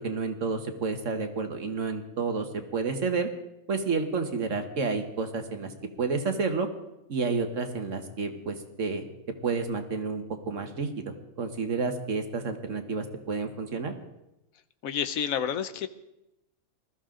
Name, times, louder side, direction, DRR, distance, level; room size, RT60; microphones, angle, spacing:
voice 1, 0.0-3.3 3.7-5.7 6.0-6.7 7.1-9.1 9.4-13.9, right 4 dB, 65° right, 7 dB, 1.7 m, -30 dB
voice 2, 14.8-15.9, left 8 dB, 85° left, 12 dB, 1.3 m, -29 dB
20.5 x 13.5 x 3.8 m, 0.88 s
omnidirectional pair, 1.4 m